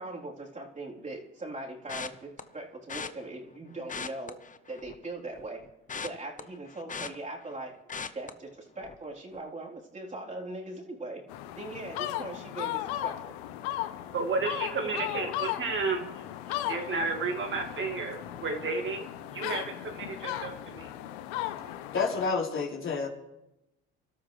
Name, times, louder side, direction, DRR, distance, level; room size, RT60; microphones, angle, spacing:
voice 1, 0.0-4.4 4.7-5.7 5.9-7.8 8.1-11.2 11.6-13.2 22.5-22.6, right 2 dB, 25° right, -2 dB, 3.9 m, -40 dB
sound 1, 1.9-2.4 2.9-3.1 3.8-5.0 5.4-7.6 7.9-8.3 8.8-9.0 9.3-9.4, left 5 dB, 25° left, 1.1 m, -39 dB
sound 2, 11.3-22.3, left 13 dB, 80° left, 1.1 m, -36 dB
voice 2, 14.1-16.0 16.7-19.1 19.3-20.9, right 4 dB, 40° right, 3 dB, 2.3 m, -32 dB
voice 3, 21.9-23.1, left 5 dB, 40° left, -2 dB, 3.9 m, -29 dB
25.5 x 12.5 x 3.3 m, 0.90 s
supercardioid pair, 80°, 31 cm